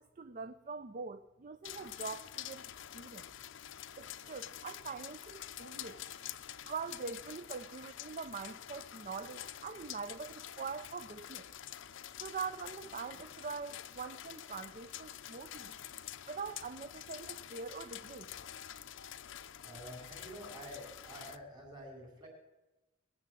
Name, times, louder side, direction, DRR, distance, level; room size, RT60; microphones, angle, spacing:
voice 1, 0.0-3.2 4.0-6.0 6.6-11.4 12.1-15.7 16.3-18.3, right 5 dB, 40° right, 11 dB, 0.5 m, -43 dB
sound 1, 1.6-21.4, left 11 dB, 65° left, 0.5 m, -47 dB
voice 2, 19.6-22.3, equal, 20° right, 2 dB, 3.8 m, -48 dB
21.0 x 7.6 x 7.6 m, 1.0 s
head